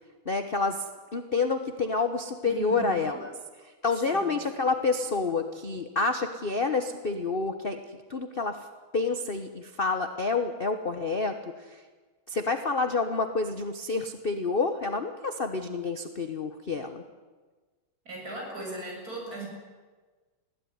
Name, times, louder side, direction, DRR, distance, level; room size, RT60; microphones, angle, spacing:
voice 1, 0.2-0.8 1.1-3.3 3.6-8.7 8.9-11.8 12.3-17.1, left 4 dB, 35° left, 7 dB, 1.0 m, -28 dB
voice 2, 2.5-3.2 4.1-4.2 18.0-19.5, right 2 dB, 45° right, -1 dB, 7.7 m, -38 dB
21.0 x 16.5 x 9.6 m, 1.3 s
omnidirectional pair, 2.2 m